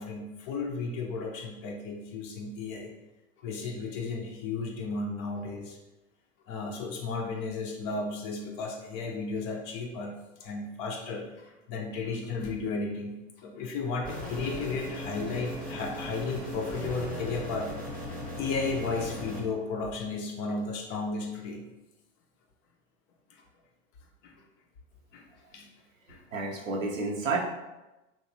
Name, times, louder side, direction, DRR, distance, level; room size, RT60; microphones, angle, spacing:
voice 1, 0.0-2.9 3.4-5.8 6.5-10.1 10.4-17.7 18.0-21.6 23.3-23.4 24.2-24.4 25.1-25.3 25.5-25.7 26.1-26.2, left 3 dB, 35° left, 1 dB, 0.5 m, -34 dB
sound 1, 14.0-19.4, left 1 dB, 5° left, 0.8 m, -38 dB
voice 2, 26.3-27.4, right 3 dB, 90° right, -2 dB, 0.7 m, -30 dB
3.2 x 2.6 x 2.6 m, 1.0 s
figure-of-eight pair, 90°, 38 cm